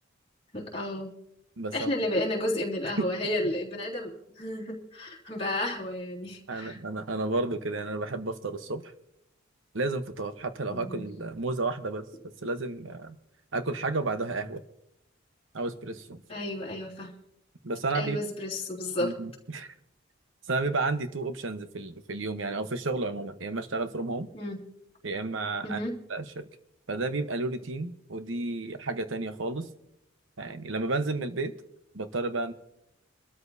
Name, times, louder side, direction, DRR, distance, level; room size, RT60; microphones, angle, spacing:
voice 1, 0.5-1.1 1.7-6.8 10.7-11.0 16.3-17.1 17.9-19.1 24.3-24.6 25.6-25.9, left 1 dB, 30° left, -4 dB, 3.2 m, -32 dB
voice 2, 1.6-1.9 2.8-2.9 6.5-8.9 9.7-12.1 12.4-13.2 13.5-14.6 15.5-16.2 17.6-18.2 19.0-19.7 20.5-24.3 25.0-25.8 26.1-26.5 26.9-29.7 30.4-31.5 31.9-32.5, right 3 dB, 70° right, 10 dB, 1.1 m, -32 dB
25.0 x 13.0 x 2.7 m, 0.82 s
head